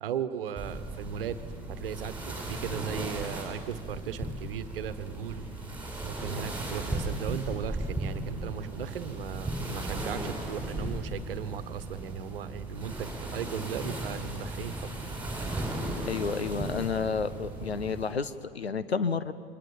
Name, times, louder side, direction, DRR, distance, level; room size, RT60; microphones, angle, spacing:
voice 1, 0.0-1.4 1.7-5.5 6.0-14.7, right 9 dB, 60° right, 12 dB, 1.3 m, -37 dB
sound 1, 0.6-18.1, right 1 dB, 5° right, 7.1 m, -36 dB
voice 2, 16.0-19.3, left 5 dB, 80° left, 13 dB, 0.9 m, -31 dB
29.5 x 23.0 x 7.3 m, 2.2 s
figure-of-eight pair, 85°, 31 cm